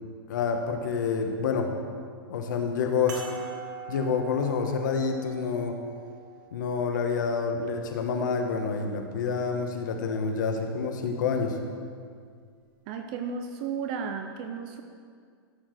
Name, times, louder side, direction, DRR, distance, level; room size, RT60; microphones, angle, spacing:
voice 1, 0.3-1.7 2.3-3.2 3.9-5.7 6.5-11.6, left 5 dB, 50° left, 4 dB, 1.1 m, -28 dB
sound 1, 3.1-7.9 8.7-8.8 10.9-11.0, right 7 dB, 50° right, 1.6 m, -44 dB
voice 2, 12.9-14.8, right 6 dB, 20° right, 6 dB, 0.3 m, -34 dB
13.0 x 4.7 x 6.3 m, 2.1 s
supercardioid pair, 180°, 13 cm